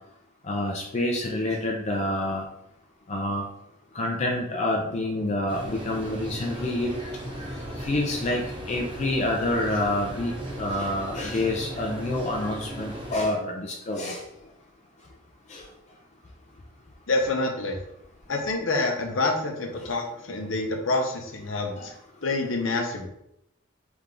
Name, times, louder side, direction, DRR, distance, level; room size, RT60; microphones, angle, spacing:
voice 1, 0.4-2.5 3.1-3.5 3.9-6.9 7.8-10.3 10.6-14.2 15.5-15.6 21.8-21.9, left 1 dB, 35° left, 0 dB, 0.5 m, -27 dB
sound 1, 5.5-13.2, right 1 dB, 25° right, 0.8 m, -37 dB
voice 2, 17.1-17.8 18.3-21.9 22.2-23.1, left 2 dB, 70° left, 3 dB, 0.8 m, -27 dB
3.5 x 3.3 x 3.7 m, 0.78 s
head